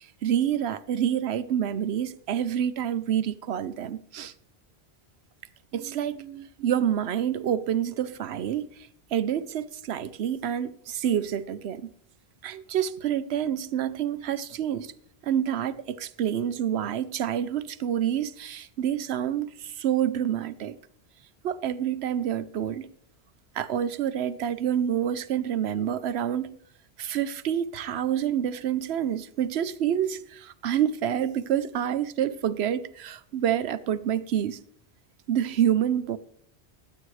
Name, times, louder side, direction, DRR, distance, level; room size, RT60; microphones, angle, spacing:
voice 1, 0.0-4.3 5.7-8.7 9.1-11.9 12.4-14.9 15.2-20.8 21.4-22.9 23.6-26.5 27.0-34.6 35.3-36.2, right 9 dB, 80° right, 0.9 m, -28 dB
22.5 x 8.5 x 3.2 m
omnidirectional pair, 1.1 m